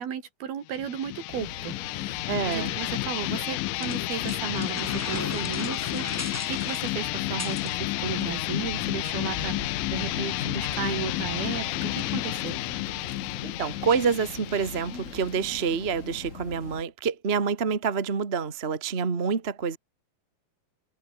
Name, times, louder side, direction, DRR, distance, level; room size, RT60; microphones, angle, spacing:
voice 1, 0.0-12.6, right 8 dB, 75° right, 4.8 m, -35 dB
sound 1, 0.7-16.1, left 21 dB, 85° left, 2.0 m, -31 dB
sound 2, 1.3-16.8, left 4 dB, 25° left, 2.3 m, -41 dB
voice 2, 2.3-2.7 13.4-19.8, right 6 dB, 35° right, 0.9 m, -27 dB
sound 3, 3.8-7.7, left 1 dB, 10° left, 1.0 m, -38 dB
omnidirectional pair, 4.4 m